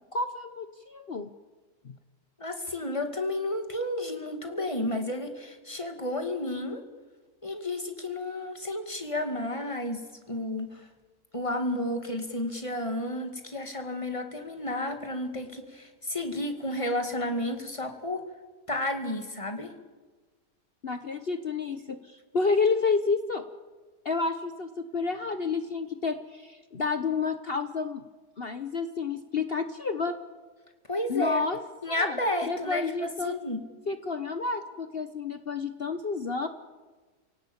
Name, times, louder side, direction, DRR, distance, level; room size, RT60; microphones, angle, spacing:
voice 1, 0.1-1.3 1.8-2.0 20.8-23.4 24.0-28.0 28.4-30.2 31.1-31.6 31.9-33.3 33.9-36.5, left 4 dB, 45° left, 9 dB, 1.1 m, -30 dB
voice 2, 2.4-6.8 7.4-10.0 10.3-10.9 11.3-18.2 18.7-19.7 30.9-31.4 31.8-33.6, left 1 dB, 20° left, 6 dB, 2.3 m, -32 dB
28.5 x 18.0 x 8.6 m, 1.3 s
omnidirectional pair, 1.6 m